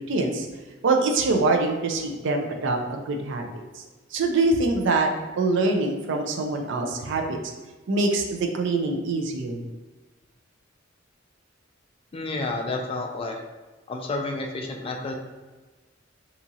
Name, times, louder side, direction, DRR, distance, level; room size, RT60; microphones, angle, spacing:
voice 1, 0.1-0.5 0.8-3.4 3.8-3.9 4.1-5.1 5.4-7.4 7.9-9.6, right 3 dB, 65° right, 3 dB, 0.4 m, -24 dB
voice 2, 12.1-13.4 13.9-15.1, left 2 dB, 30° left, 2 dB, 0.3 m, -30 dB
2.8 x 2.4 x 2.7 m, 1.2 s
head